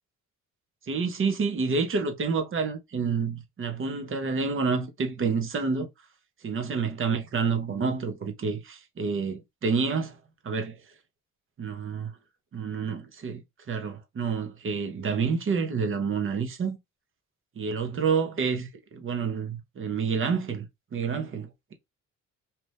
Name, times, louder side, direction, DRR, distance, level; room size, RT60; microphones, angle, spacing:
voice 1, 0.9-5.9 6.4-10.2 10.4-10.8 11.6-12.1 12.5-13.4 13.7-16.8 17.6-21.7, right 5 dB, 45° right, 0.9 m, -28 dB
2.9 x 2.5 x 3.3 m
cardioid pair, 90°, 30 cm